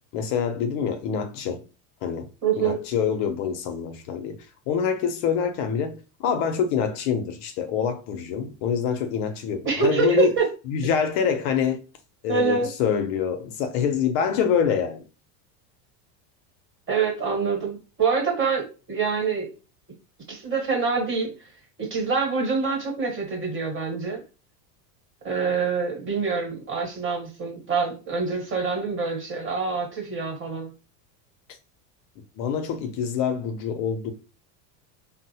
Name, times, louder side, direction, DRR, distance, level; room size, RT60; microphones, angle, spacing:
voice 1, 0.1-1.6 2.0-2.3 2.6-10.4 10.7-11.8 12.2-15.0 32.4-34.1, left 7 dB, 55° left, 0.6 m, -26 dB
voice 2, 2.4-2.8 9.6-10.5 12.3-12.7 16.9-19.5 20.3-21.5 21.8-24.2 25.2-30.7, right 5 dB, 25° right, 1.2 m, -25 dB
3.6 x 2.0 x 2.7 m
supercardioid pair, 130°, 49 cm